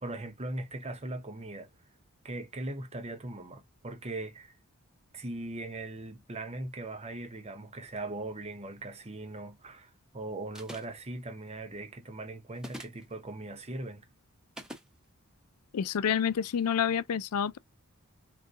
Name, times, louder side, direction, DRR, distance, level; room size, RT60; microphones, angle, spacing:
voice 1, 0.0-1.7 2.2-4.6 5.1-14.0, right 2 dB, 30° right, 0.9 m, -39 dB
sound 1, 10.5-11.0 12.6-13.0 14.6-14.9, equal, 5° right, 0.9 m, -43 dB
voice 2, 15.7-17.6, left 8 dB, 85° left, 0.4 m, -28 dB
6.5 x 2.3 x 2.8 m
head